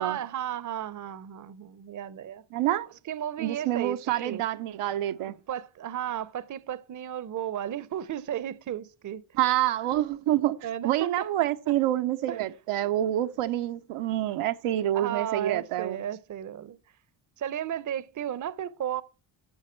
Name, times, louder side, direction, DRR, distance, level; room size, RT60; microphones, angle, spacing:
voice 1, 0.0-2.4 3.0-4.4 5.2-9.2 10.6-11.7 12.3-12.4 13.4-13.6 14.9-16.8 17.4-19.0, right 10 dB, 40° right, 0.6 m, -34 dB
voice 2, 2.5-2.9 3.4-5.3 9.4-10.6 10.8-16.0, right 13 dB, 90° right, 0.7 m, -27 dB
11.5 x 6.4 x 4.4 m
cardioid pair, 80°, 49 cm